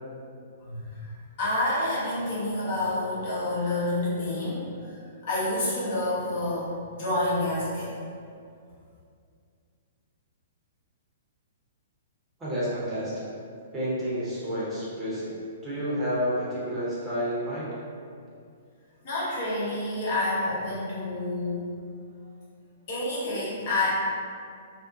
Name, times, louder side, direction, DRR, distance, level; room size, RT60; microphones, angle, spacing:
voice 1, 0.6-8.0 19.0-21.6 22.9-23.9, left 1 dB, 50° left, -8 dB, 0.8 m, -29 dB
voice 2, 12.4-13.3 13.7-15.3 15.6-17.8, equal, 15° right, -10 dB, 0.9 m, -30 dB
2.5 x 2.0 x 2.6 m, 2.3 s
figure-of-eight pair, 115°, 0 cm